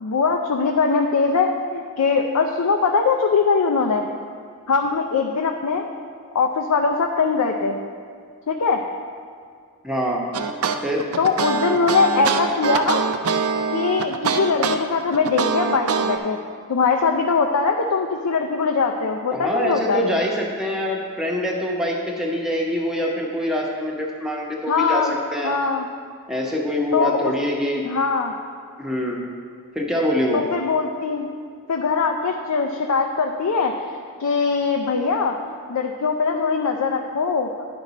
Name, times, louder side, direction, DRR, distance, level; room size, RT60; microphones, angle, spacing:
voice 1, 0.0-4.1 4.7-5.9 6.3-7.8 8.5-8.8 11.2-13.0 13.7-16.4 16.7-20.0 24.7-25.2 25.4-25.9 26.9-27.3 27.9-28.3 30.3-31.3 31.7-37.7, left 4 dB, 90° left, 3 dB, 0.5 m, -21 dB
voice 2, 9.8-10.2 10.8-11.1 19.3-25.5 26.3-27.9 28.8-29.2 29.7-30.5, equal, ahead, -2 dB, 0.9 m, -24 dB
sound 1, 10.3-16.2, right 5 dB, 75° right, 0.5 m, -23 dB
10.5 x 5.3 x 4.1 m, 2.3 s
head